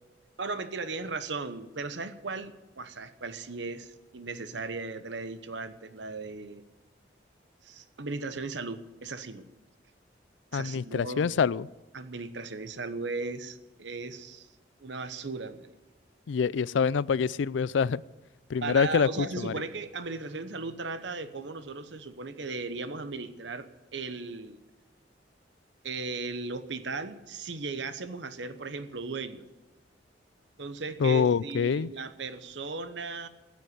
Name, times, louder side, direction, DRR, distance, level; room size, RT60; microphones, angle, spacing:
voice 1, 0.4-6.6 7.6-9.5 10.5-11.3 11.9-14.5 14.8-15.7 18.6-24.6 25.8-29.5 30.6-33.3, right 3 dB, 80° right, 1.0 m, -37 dB
voice 2, 10.5-11.7 16.3-18.0 18.5-19.1 19.4-19.5 31.0-31.9, left 6 dB, 90° left, 0.4 m, -25 dB
15.0 x 7.9 x 9.7 m
head